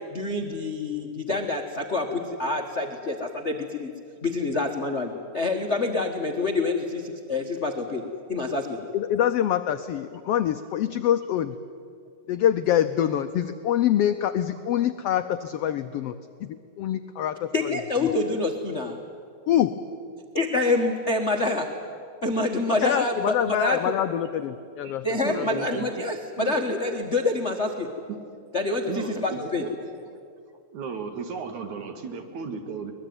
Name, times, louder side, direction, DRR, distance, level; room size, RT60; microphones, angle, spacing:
voice 1, 0.1-3.9 4.2-8.0 8.3-8.8 17.5-19.0 20.3-21.7 22.2-23.9 25.0-27.9 28.5-29.6, left 2 dB, 45° left, 4 dB, 0.8 m, -27 dB
voice 2, 8.9-11.6 12.3-16.1 16.4-17.7 18.0-18.1 19.5-19.7 22.7-25.9, left 11 dB, 85° left, 10 dB, 1.3 m, -25 dB
voice 3, 25.2-26.1 26.4-26.7 28.1-28.2 28.9-29.9 30.7-32.9, right 5 dB, 70° right, 7 dB, 3.1 m, -34 dB
23.5 x 20.5 x 9.4 m, 2.3 s
omnidirectional pair, 3.6 m